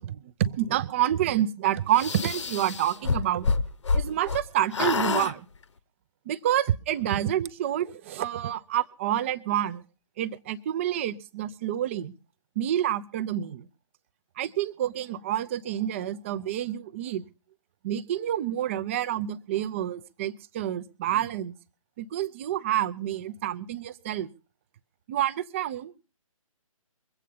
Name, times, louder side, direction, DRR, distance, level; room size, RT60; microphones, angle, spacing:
voice 1, 0.0-3.5 3.9-5.5 6.3-9.8 10.2-12.1 12.6-13.7 14.4-17.2 17.8-21.5 22.0-24.3 25.1-25.9, right 11 dB, 20° right, 14 dB, 0.6 m, -28 dB
sound 1, 1.9-4.4 4.7-5.3, left 4 dB, 55° left, 1.0 m, -27 dB
23.0 x 8.3 x 5.4 m, 0.34 s
figure-of-eight pair, 140°, 18 cm